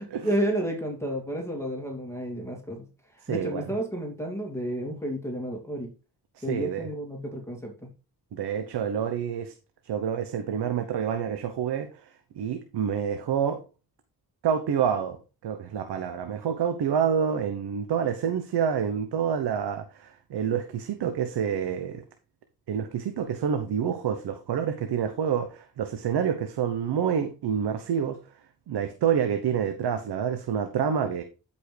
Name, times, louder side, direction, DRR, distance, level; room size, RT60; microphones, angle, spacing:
voice 1, 0.2-2.8 3.1-5.9 6.4-7.7, right 1 dB, 5° left, 2.6 m, -31 dB
voice 2, 3.2-3.6 6.4-6.9 8.3-9.5 9.8-12.1 12.4-13.6 14.4-15.2 15.4-22.0 22.7-28.2 28.7-31.2, right 8 dB, 70° right, 1.1 m, -28 dB
12.5 x 5.6 x 3.4 m
cardioid pair, 80°, 41 cm